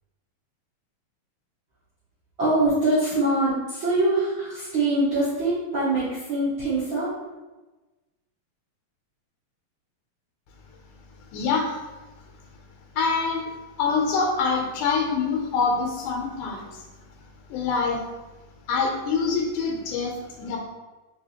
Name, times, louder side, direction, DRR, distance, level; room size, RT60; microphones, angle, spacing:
voice 1, 2.4-7.1, right 2 dB, 55° right, -12 dB, 1.5 m, -23 dB
voice 2, 11.3-11.8 13.0-13.5 13.8-16.8 17.5-18.0 18.7-20.6, left 4 dB, 80° left, 0 dB, 2.1 m, -25 dB
4.8 x 3.4 x 2.8 m, 1.2 s
omnidirectional pair, 3.8 m